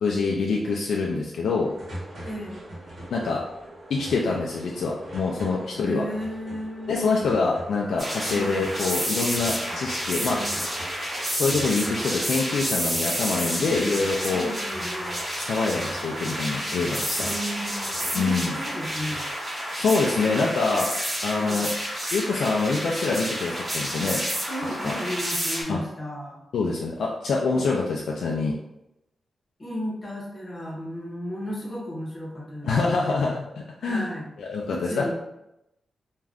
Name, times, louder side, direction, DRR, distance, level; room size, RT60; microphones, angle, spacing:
voice 1, 0.0-1.7 3.1-3.4 3.9-6.0 6.9-10.4 11.3-14.5 15.4-17.3 18.1-18.5 19.8-20.9 21.2-21.7 22.1-24.2 24.8-24.9 25.7-25.8 26.5-28.6 32.6-34.1 34.4-35.0, left 4 dB, 85° left, -2 dB, 0.3 m, -25 dB
sound 1, 1.6-19.3, right 1 dB, 55° right, 1.0 m, -42 dB
voice 2, 2.2-2.6 5.7-7.4 8.3-8.6 10.3-10.6 13.6-14.0 14.3-15.2 17.2-19.3 20.2-20.5 21.4-21.7 24.5-26.4 27.5-27.7 29.6-32.9 33.8-34.3 34.7-35.1, equal, 25° left, -4 dB, 0.7 m, -34 dB
sound 2, 8.0-25.6, equal, 25° right, 1.0 m, -30 dB
2.4 x 2.2 x 3.4 m, 0.87 s
wide cardioid pair, 175°, 0 cm